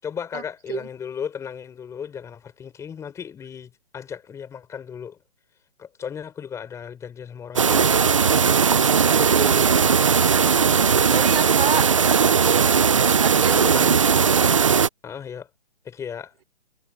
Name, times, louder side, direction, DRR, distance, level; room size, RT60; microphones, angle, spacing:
voice 1, 0.0-5.2 5.8-8.6 9.1-9.7 13.5-14.3 15.0-15.5 15.8-16.4, left 7 dB, 10° left, 4.5 m, -36 dB
sound 1, 7.6-14.9, right 6 dB, 30° right, 0.4 m, -18 dB
voice 2, 9.1-9.8 10.2-10.7 11.0-12.8 13.1-14.1, right 7 dB, 60° right, 4.8 m, -30 dB
hypercardioid pair, 155°, 33 cm